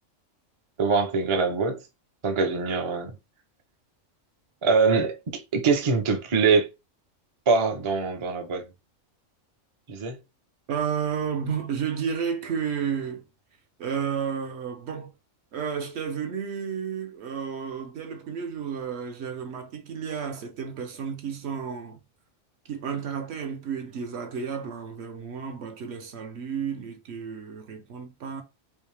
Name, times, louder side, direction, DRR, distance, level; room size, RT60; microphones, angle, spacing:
voice 1, 0.8-1.8 2.2-3.2 4.6-6.7 7.5-8.7 9.9-10.2, right 4 dB, 40° right, 0.4 m, -23 dB
voice 2, 10.7-13.2 13.8-15.1 15.5-22.0 22.7-28.4, right 7 dB, 60° right, 0.8 m, -32 dB
3.3 x 2.7 x 3.2 m
omnidirectional pair, 1.4 m